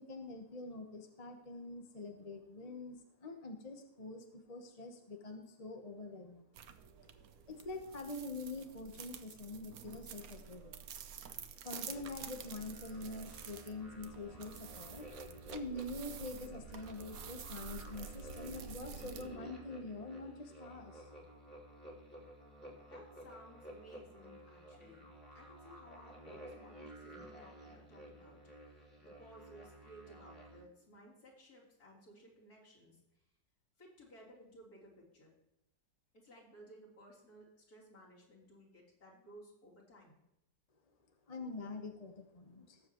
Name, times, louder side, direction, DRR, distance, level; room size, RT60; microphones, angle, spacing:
voice 1, 0.0-6.5 7.5-10.7 11.6-15.0 15.5-21.1 41.3-42.8, left 2 dB, 25° left, 3 dB, 0.9 m, -45 dB
sound 1, 6.5-19.2, right 7 dB, 60° right, 1.1 m, -50 dB
sound 2, 11.9-30.6, right 1 dB, 5° left, 2.1 m, -53 dB
voice 2, 22.9-25.1 25.3-33.0 33.8-35.3 36.1-40.2, right 1 dB, 55° left, -6 dB, 4.1 m, -58 dB
18.5 x 7.5 x 3.0 m, 0.87 s
omnidirectional pair, 1.9 m